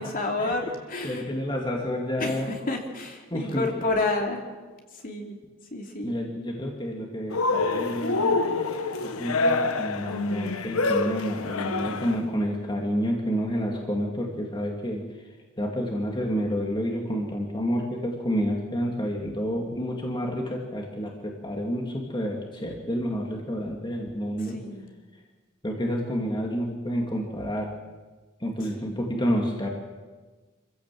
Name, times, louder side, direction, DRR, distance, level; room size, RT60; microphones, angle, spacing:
voice 1, 0.0-1.3 2.2-4.4 4.9-5.3 5.7-6.1 11.4-12.0 24.5-25.0 28.8-29.1, left 2 dB, 40° left, 2 dB, 3.0 m, -30 dB
voice 2, 1.0-2.5 3.3-3.8 6.0-8.4 9.2-15.0 15.6-24.6 25.6-27.7 28.4-29.7, equal, 20° left, 0 dB, 2.4 m, -29 dB
Cheering, 7.3-12.3, left 3 dB, 85° left, 1.3 m, -26 dB
26.5 x 16.0 x 7.7 m, 1.3 s
head